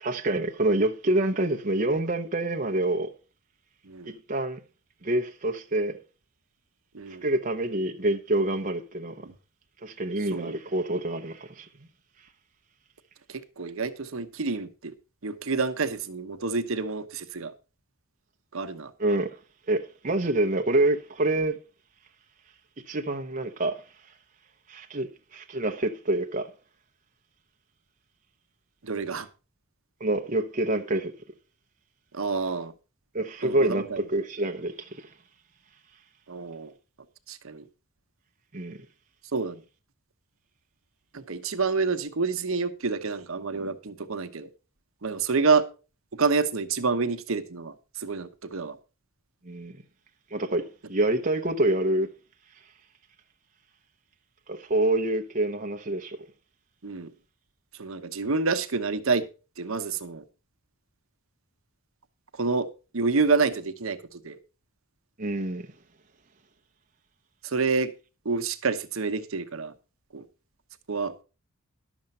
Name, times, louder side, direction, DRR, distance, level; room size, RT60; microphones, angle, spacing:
voice 1, 0.0-3.1 4.1-4.6 5.0-6.0 7.2-9.3 9.8-11.7 19.0-19.4 19.7-21.6 22.9-23.8 24.7-26.5 30.0-31.1 33.1-35.1 38.5-38.8 49.4-49.8 50.3-52.1 54.5-56.2 65.2-65.7, right 1 dB, 35° right, 0.8 m, -27 dB
voice 2, 6.9-7.2 9.2-9.4 10.2-10.5 13.3-14.9 15.2-17.5 18.5-18.9 28.8-29.3 32.1-32.7 33.4-34.0 36.3-36.7 37.3-37.6 39.3-39.6 41.1-44.5 45.0-45.7 46.1-48.8 56.8-57.1 57.7-59.3 59.6-60.2 62.3-64.4 67.4-67.9 68.2-69.7 70.1-70.2 70.9-71.1, right 4 dB, 65° right, 1.0 m, -28 dB
12.0 x 7.1 x 5.4 m
head